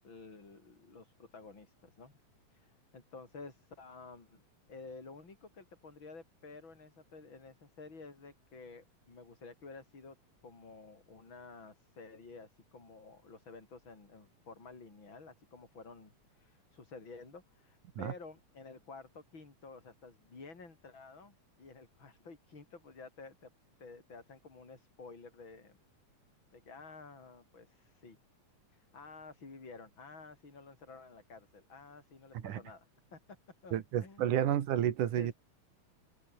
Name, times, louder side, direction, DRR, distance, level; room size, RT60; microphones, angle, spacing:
voice 1, 0.0-2.1 2.5-4.4 4.7-10.2 10.4-23.5 23.8-25.8 26.5-28.2 28.7-33.2 33.6-34.6 35.2-35.3, left 4 dB, 40° left, 5.5 m, -52 dB
voice 2, 33.7-35.3, right 10 dB, 90° right, 3.2 m, -31 dB
omnidirectional pair, 3.5 m